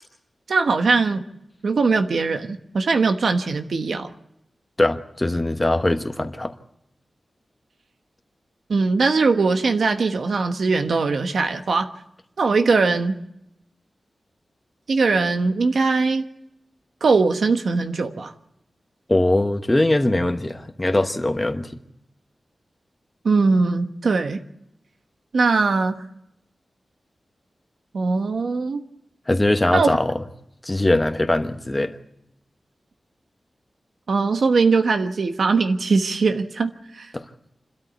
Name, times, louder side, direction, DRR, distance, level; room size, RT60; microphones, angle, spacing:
voice 1, 0.5-1.2 1.6-4.1 8.7-11.9 12.4-13.2 14.9-16.2 17.0-18.3 23.2-24.4 25.3-26.0 27.9-28.8 29.7-30.0 34.1-37.1, right 4 dB, 75° right, 6 dB, 1.2 m, -20 dB
voice 2, 4.8-6.5 19.1-21.8 29.3-30.2 30.6-31.9 37.1-37.2, left 1 dB, 15° left, 6 dB, 1.1 m, -21 dB
26.5 x 13.0 x 8.2 m, 0.84 s
wide cardioid pair, 120°, 0 cm